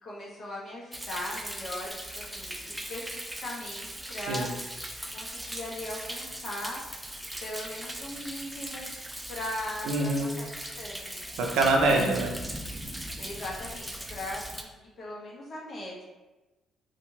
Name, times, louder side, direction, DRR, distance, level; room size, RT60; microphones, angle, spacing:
voice 1, 0.0-2.1 2.3-4.5 5.1-6.8 7.4-8.9 9.3-10.5 10.8-11.1 11.9-12.3 13.2-14.7 15.0-16.0, left 1 dB, 55° left, -4 dB, 1.0 m, -39 dB
Thunder, 0.9-14.6, right 1 dB, 10° right, 0.4 m, -39 dB
voice 2, 9.9-10.3 11.4-12.3, right 2 dB, 80° right, 1 dB, 0.5 m, -25 dB
2.8 x 2.5 x 2.7 m, 1.1 s
supercardioid pair, 65°, 0 cm